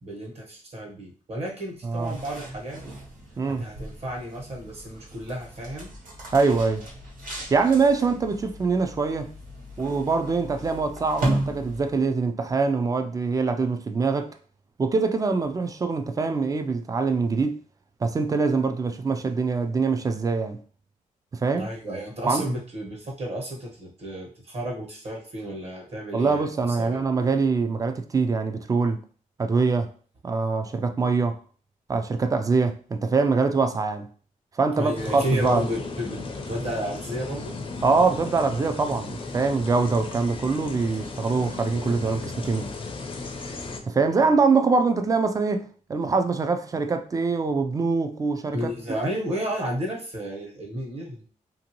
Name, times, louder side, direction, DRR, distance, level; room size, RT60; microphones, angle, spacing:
voice 1, 0.0-2.8 3.6-5.9 21.6-26.5 26.8-27.0 34.8-37.6 43.8-44.0 44.2-44.4 48.5-51.2, equal, 50° right, 1.2 m, -32 dB
voice 2, 1.8-2.1 3.4-3.7 6.3-6.9 7.5-9.3 9.8-14.3 14.8-17.6 18.0-20.6 21.3-21.7 22.3-22.5 26.1-29.0 29.4-29.9 30.2-31.4 31.9-34.1 34.6-35.6 37.8-42.7 43.8-48.7, right 4 dB, 25° right, 0.3 m, -24 dB
sound 1, 1.8-12.2, right 1 dB, 85° right, 1.4 m, -36 dB
sound 2, 34.9-43.8, left 3 dB, 40° left, 0.5 m, -35 dB
2.9 x 2.7 x 2.9 m
wide cardioid pair, 135°, 14 cm